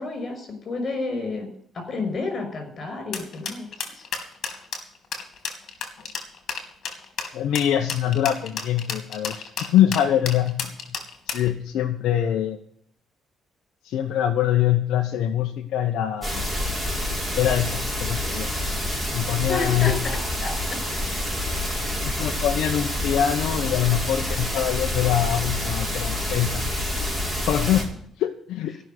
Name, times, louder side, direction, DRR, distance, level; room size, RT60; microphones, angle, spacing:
voice 1, 0.0-4.0 19.5-21.0, left 3 dB, 50° left, 6 dB, 5.9 m, -31 dB
sound 1, 3.1-11.5, left 6 dB, 65° left, 2.8 m, -31 dB
voice 2, 7.3-9.4 9.7-10.7 11.3-12.6 13.8-16.4 17.4-18.5 19.1-19.9 22.1-26.6 27.5-27.9 28.2-28.7, left 11 dB, 85° left, 3 dB, 0.9 m, -23 dB
sound 2, 16.2-27.8, left 1 dB, 5° right, 5.8 m, -27 dB
14.5 x 6.4 x 9.4 m, 0.65 s
cardioid pair, 90°, 0 cm